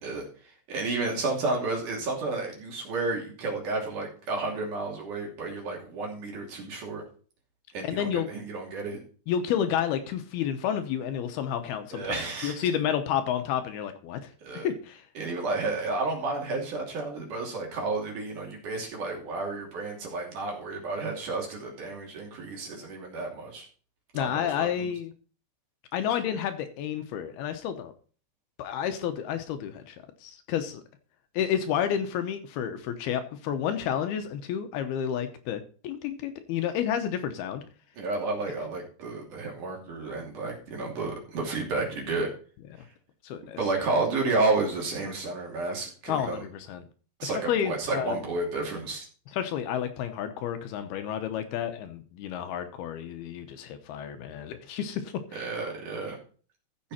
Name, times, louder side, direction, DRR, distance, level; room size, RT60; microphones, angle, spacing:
voice 1, 0.0-7.0 7.7-9.0 11.9-12.7 14.4-14.7 15.2-23.7 24.1-24.9 38.0-42.3 43.6-46.4 47.2-49.1 55.3-56.2, right 3 dB, 50° right, -1 dB, 4.1 m, -31 dB
voice 2, 7.8-8.3 9.3-15.0 24.1-25.1 25.9-27.9 28.6-30.0 30.2-30.8 31.3-37.6 43.2-43.6 46.1-46.8 47.2-48.2 49.3-55.5, left 9 dB, 75° left, 9 dB, 2.8 m, -30 dB
14.0 x 6.9 x 4.3 m, 0.40 s
omnidirectional pair, 4.7 m